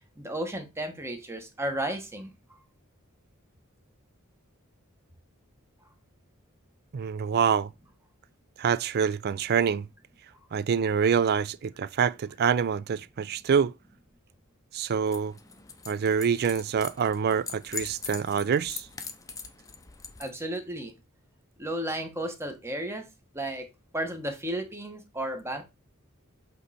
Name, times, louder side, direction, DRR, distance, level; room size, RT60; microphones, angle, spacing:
voice 1, 0.2-2.3 20.2-20.9 21.6-23.1 23.3-23.7 23.9-25.6, right 1 dB, 10° right, 1.0 m, -33 dB
voice 2, 6.9-7.7 8.6-9.9 10.5-13.7 14.7-15.3 15.9-18.9, right 7 dB, 50° right, 0.4 m, -26 dB
sound 1, 15.1-20.3, left 5 dB, 15° left, 0.6 m, -42 dB
8.0 x 3.1 x 4.1 m
head